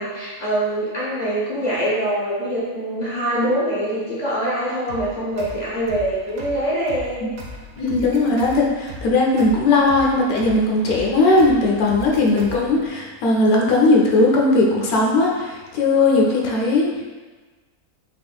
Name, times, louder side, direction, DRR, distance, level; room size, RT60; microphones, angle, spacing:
voice 1, 0.0-7.3 16.2-16.6, right 1 dB, 40° left, -8 dB, 0.6 m, -24 dB
sound 1, 4.9-12.9, equal, 80° right, 0.5 m, -38 dB
voice 2, 7.8-17.0, left 2 dB, 80° left, -2 dB, 1.1 m, -18 dB
3.7 x 3.6 x 2.3 m, 1.3 s
omnidirectional pair, 1.6 m